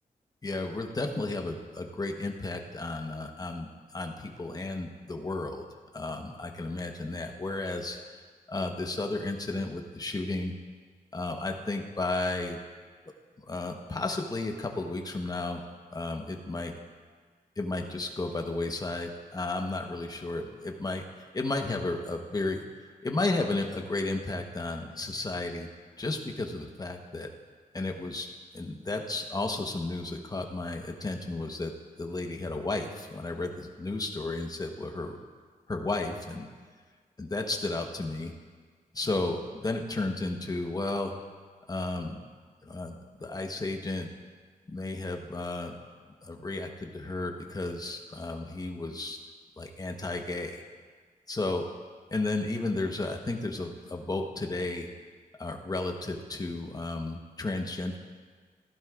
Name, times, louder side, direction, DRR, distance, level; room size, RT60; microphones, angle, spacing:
voice 1, 0.4-5.6 5.9-8.0 8.5-10.5 11.1-12.6 13.4-15.6 15.9-16.7 17.6-22.6 23.0-25.7 26.0-27.3 27.7-28.3 28.5-31.7 32.0-35.2 35.7-36.5 37.2-38.3 38.9-41.1 41.7-42.2 42.6-44.1 44.7-45.8 46.2-49.2 49.6-50.6 51.3-51.7 52.1-54.9 55.4-58.0, left 2 dB, 25° left, 3 dB, 1.1 m, -33 dB
15.5 x 11.5 x 2.5 m, 1.6 s
cardioid pair, 90°, 15 cm